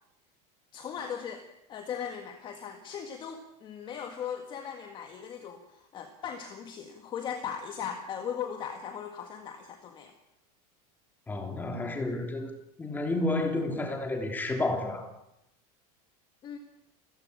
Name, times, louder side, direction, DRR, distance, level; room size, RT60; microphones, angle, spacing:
voice 1, 0.7-10.1 16.4-16.6, left 8 dB, 25° left, 7 dB, 1.8 m, -38 dB
voice 2, 11.3-12.5 12.8-15.1, left 2 dB, 10° left, 4 dB, 3.2 m, -30 dB
29.5 x 15.0 x 8.5 m, 0.84 s
supercardioid pair, 175°, 19 cm